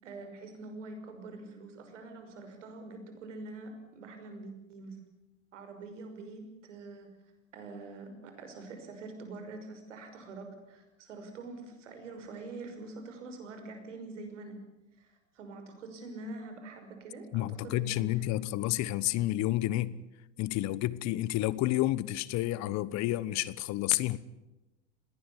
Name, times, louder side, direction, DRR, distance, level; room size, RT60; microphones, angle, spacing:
voice 1, 0.0-5.0 5.5-7.1 7.5-14.6 15.0-18.4, right 3 dB, 85° right, 6 dB, 6.0 m, -45 dB
voice 2, 17.3-20.0 20.4-24.2, left 15 dB, 50° left, 19 dB, 1.2 m, -30 dB
21.0 x 18.0 x 9.9 m, 0.99 s
hypercardioid pair, 100°, 36 cm